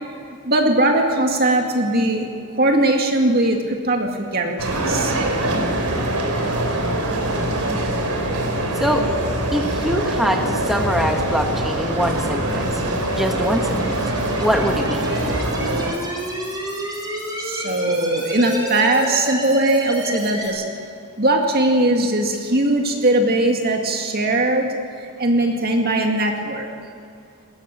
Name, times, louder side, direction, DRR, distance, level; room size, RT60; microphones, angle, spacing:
voice 1, 0.3-5.1 17.4-20.6 21.2-24.7 25.0-26.7, right 1 dB, 45° right, 2 dB, 2.2 m, -20 dB
sound 1, 4.6-15.9, right 1 dB, 90° right, 3.4 m, -23 dB
voice 2, 8.7-9.1 9.5-12.8 13.1-14.0 14.4-15.1, equal, ahead, 3 dB, 1.1 m, -23 dB
sound 2, 12.5-20.5, equal, 20° right, 5.3 m, -30 dB
20.5 x 16.0 x 9.0 m, 2.3 s
head